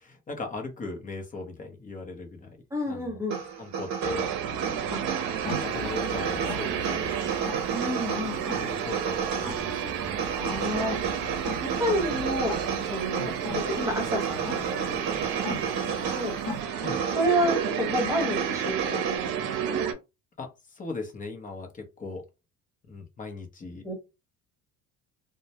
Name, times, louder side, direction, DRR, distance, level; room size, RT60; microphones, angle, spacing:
voice 1, 0.0-2.6 2.9-3.2 3.6-4.2 5.4-8.0 8.5-10.2 10.6-10.8 13.1-13.3 16.8-17.0 20.4-22.2 22.9-23.9, left 3 dB, 25° left, 3 dB, 0.6 m, -39 dB
voice 2, 2.7-3.4 4.9-5.0 7.7-8.4 10.3-11.4 11.8-16.4 17.2-19.8 23.8-23.9, equal, 10° right, 1 dB, 0.9 m, -30 dB
sound 1, 3.3-19.2, right 6 dB, 60° right, 0.8 m, -33 dB
sound 2, 4.0-19.9, right 8 dB, 90° right, 0.6 m, -31 dB
sound 3, 5.4-16.6, left 2 dB, 55° left, 0.9 m, -41 dB
2.1 x 2.1 x 2.8 m, 0.25 s
cardioid pair, 135°, 32 cm